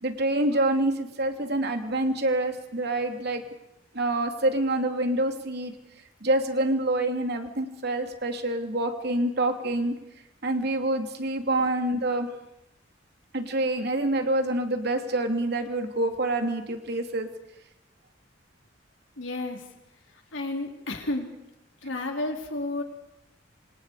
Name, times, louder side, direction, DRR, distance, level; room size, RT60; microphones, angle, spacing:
voice 1, 0.0-3.4 3.9-5.7 6.2-9.9 10.4-12.3 13.3-17.3, right 1 dB, 60° right, 5 dB, 2.9 m, -26 dB
voice 2, 19.2-19.8 20.1-21.4 21.8-22.8, left 2 dB, 90° left, 2 dB, 4.2 m, -32 dB
27.0 x 26.5 x 5.0 m, 0.87 s
head